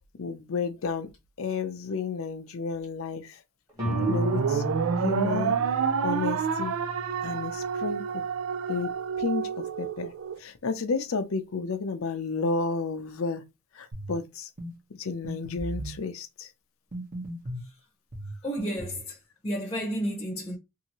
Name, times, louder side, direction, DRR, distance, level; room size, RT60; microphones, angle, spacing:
voice 1, 0.2-1.1 1.4-3.3 4.1-4.6 5.0-5.6 6.0-6.7 7.2-8.2 8.7-8.9 9.2-10.1 10.4-13.4 13.8-14.5 15.0-16.5, left 4 dB, 75° left, 0.6 m, -31 dB
Guitar, 3.8-9.2, right 1 dB, 15° right, 1.3 m, -36 dB
sound 1, 3.8-10.4, right 6 dB, 80° right, 0.4 m, -29 dB
sound 2, 13.9-14.2 14.6-14.7 15.2-16.0 16.9-17.7 18.1-19.1, right 1 dB, 40° right, 1.0 m, -37 dB
voice 2, 18.4-19.1 19.4-20.6, equal, 20° left, 0.8 m, -31 dB
2.8 x 2.6 x 2.9 m
head